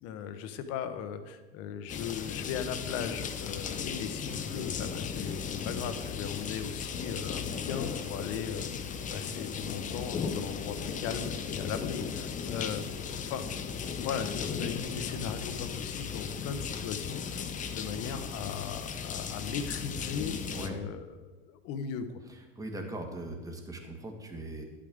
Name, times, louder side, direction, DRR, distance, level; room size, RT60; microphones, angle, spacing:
voice 1, 0.0-13.4 14.0-22.2, left 7 dB, 50° left, 9 dB, 1.0 m, -38 dB
sound 1, 1.9-20.7, left 6 dB, 25° left, 0.7 m, -36 dB
voice 2, 22.5-24.6, right 1 dB, 10° right, 3 dB, 1.6 m, -39 dB
11.5 x 8.7 x 3.6 m, 1.3 s
hypercardioid pair, 105°, 31 cm